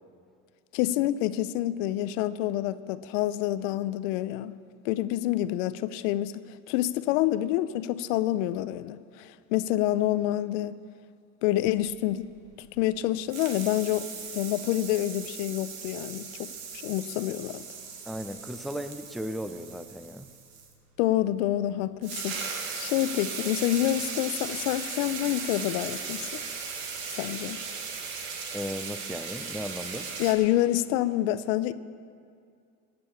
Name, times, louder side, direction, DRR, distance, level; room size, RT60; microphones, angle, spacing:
voice 1, 0.7-4.5 4.8-10.8 11.4-12.3 12.6-14.1 14.3-17.6 21.0-26.4 27.1-27.6 30.2-31.7, left 14 dB, 80° left, 15 dB, 0.6 m, -28 dB
sound 1, 11.8-13.0 13.3-20.7 21.7-21.8 22.0-30.3, right 5 dB, 70° right, 1.9 m, -37 dB
voice 2, 18.1-20.3 28.5-30.1, equal, ahead, 10 dB, 0.6 m, -36 dB
18.0 x 7.0 x 7.1 m, 2.3 s
supercardioid pair, 85°, 38 cm